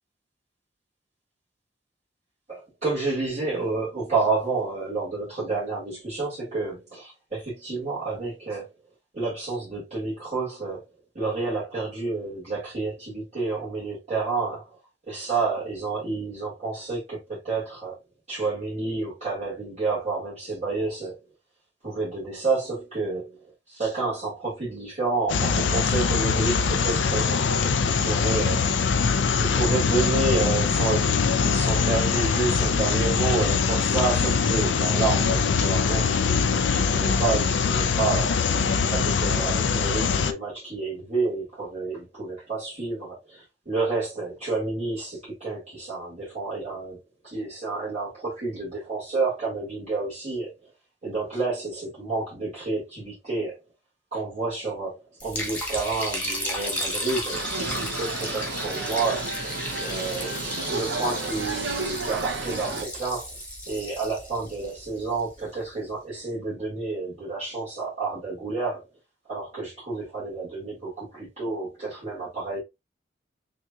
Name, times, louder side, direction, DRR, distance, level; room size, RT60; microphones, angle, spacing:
voice 1, 2.5-8.7 9.1-10.8 11.1-14.6 15.1-18.0 18.3-21.2 21.8-28.6 29.4-47.0 47.3-50.5 51.0-53.6 54.1-59.3 59.8-60.4 60.6-63.4 63.7-68.8 69.3-72.6, right 3 dB, 40° right, 2.1 m, -30 dB
sound 1, 25.3-40.3, left 5 dB, 80° left, 0.5 m, -23 dB
Liquid, 55.2-65.4, equal, 10° left, 1.4 m, -33 dB
sound 2, 57.3-62.8, right 3 dB, 70° right, 0.8 m, -32 dB
6.2 x 2.9 x 2.4 m
head